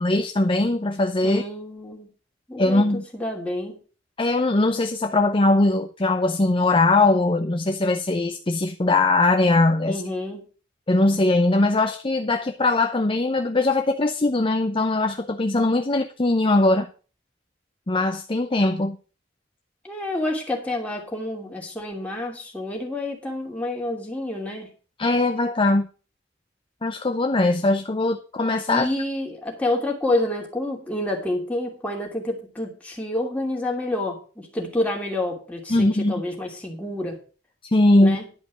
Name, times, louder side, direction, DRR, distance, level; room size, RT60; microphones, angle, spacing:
voice 1, 0.0-1.4 2.6-3.0 4.2-10.0 10.9-16.9 17.9-19.0 25.0-25.9 26.8-28.9 35.7-36.1 37.7-38.2, left 2 dB, 30° left, 6 dB, 0.7 m, -20 dB
voice 2, 1.2-2.1 2.5-3.8 9.9-10.4 19.8-24.7 28.7-37.2 38.0-38.3, left 1 dB, 5° left, -1 dB, 2.9 m, -28 dB
11.5 x 5.2 x 7.3 m, 0.36 s
head